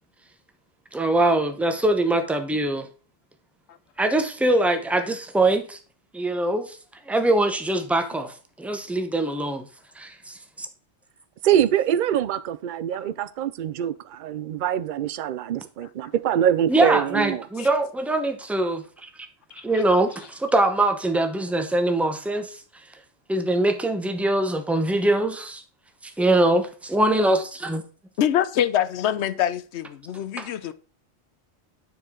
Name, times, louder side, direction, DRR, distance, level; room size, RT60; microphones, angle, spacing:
voice 1, 0.9-2.9 4.0-5.8 6.1-6.8 7.1-9.7 10.0-10.7 16.7-19.1 19.5-22.6 23.3-25.6 26.0-27.8 30.4-30.5, right 1 dB, ahead, 0.8 m, -23 dB
voice 2, 11.4-17.4, right 10 dB, 55° right, 0.6 m, -24 dB
voice 3, 28.2-30.7, left 10 dB, 80° left, 0.9 m, -24 dB
9.6 x 4.7 x 3.7 m
omnidirectional pair, 1.1 m